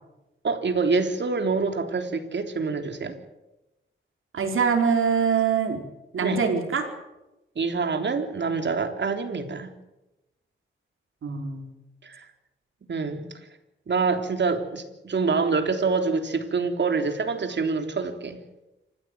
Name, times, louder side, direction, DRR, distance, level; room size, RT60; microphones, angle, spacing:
voice 1, 0.4-3.2 6.2-6.4 7.5-9.7 12.0-12.2 12.9-13.3 13.9-18.4, right 4 dB, 60° right, 6 dB, 3.5 m, -26 dB
voice 2, 4.3-5.8 6.1-6.9 11.2-11.7, right 6 dB, 80° right, 4 dB, 4.5 m, -24 dB
27.0 x 15.5 x 9.3 m, 0.97 s
cardioid pair, 85°, 21 cm